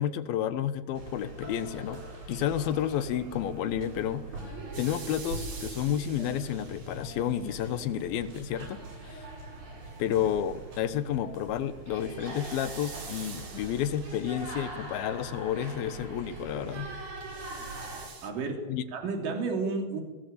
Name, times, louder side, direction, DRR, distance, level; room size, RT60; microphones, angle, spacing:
voice 1, 0.0-2.0 2.3-4.2 4.8-8.8 9.1-9.3 10.0-16.9 18.7-18.8, left 10 dB, 80° left, 13 dB, 2.8 m, -31 dB
sound 1, 1.0-18.1, right 2 dB, 80° right, 9.6 m, -42 dB
sound 2, 4.7-7.8 12.3-14.8 17.2-18.3, right 5 dB, 40° right, 2.8 m, -46 dB
voice 2, 18.2-20.0, right 4 dB, 60° right, 2 dB, 4.9 m, -32 dB
21.5 x 18.0 x 8.5 m, 1.2 s
omnidirectional pair, 4.3 m